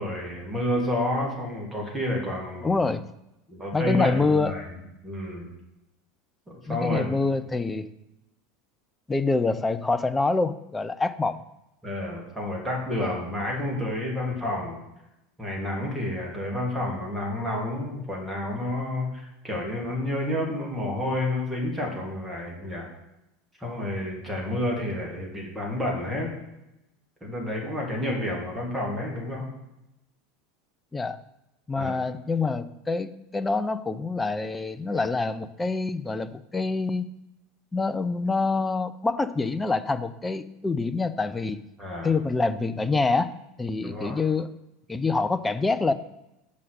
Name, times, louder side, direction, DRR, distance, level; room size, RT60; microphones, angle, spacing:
voice 1, 0.0-2.7 3.5-4.7 5.0-5.5 6.5-7.1 11.8-14.8 15.4-22.9 23.6-26.3 27.2-29.4 31.8-32.0 41.8-42.1 43.8-44.2, left 1 dB, 10° right, -2 dB, 2.8 m, -30 dB
voice 2, 2.6-3.1 3.7-4.5 6.7-7.9 9.1-11.4 30.9-31.2 31.7-37.1 37.7-41.6 42.0-44.5 44.9-45.9, left 3 dB, 15° left, 10 dB, 0.5 m, -26 dB
6.2 x 5.6 x 6.6 m, 0.90 s
figure-of-eight pair, 75°, 0 cm